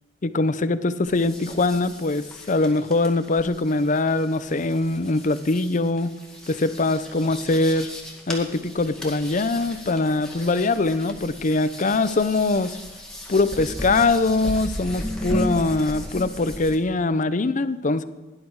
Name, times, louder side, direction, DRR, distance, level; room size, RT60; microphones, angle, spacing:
voice 1, 0.2-6.1 6.5-7.9 8.3-12.8 13.3-18.0, left 3 dB, 45° left, 13 dB, 0.6 m, -22 dB
sound 1, 1.0-16.8, left 1 dB, 5° left, 2.2 m, -36 dB
18.5 x 11.0 x 4.7 m, 1.2 s
head